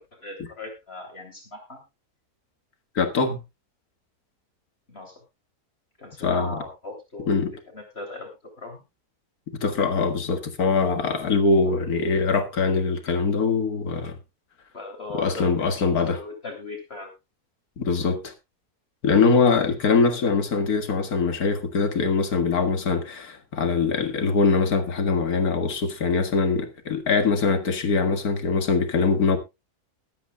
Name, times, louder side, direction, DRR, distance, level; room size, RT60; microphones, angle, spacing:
voice 1, 0.2-1.8 4.9-5.1 6.0-8.3 8.6-8.8 11.7-11.8 14.7-17.1 18.0-18.2 20.1-20.2, left 2 dB, 40° left, 3.3 m, -38 dB
voice 2, 3.0-3.4 6.2-6.6 7.3-7.5 9.5-14.2 15.1-16.2 17.8-18.3 19.0-29.4, left 4 dB, 75° left, 2.1 m, -22 dB
21.5 x 9.2 x 2.3 m
omnidirectional pair, 1.6 m